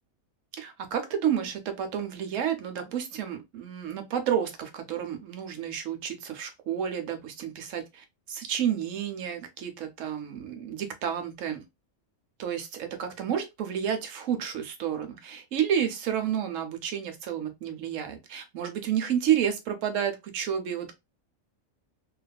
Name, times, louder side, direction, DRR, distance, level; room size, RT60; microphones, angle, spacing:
voice 1, 0.5-11.6 12.4-20.9, right 9 dB, 70° right, 1.0 m, -30 dB
2.8 x 2.4 x 2.2 m
omnidirectional pair, 1.4 m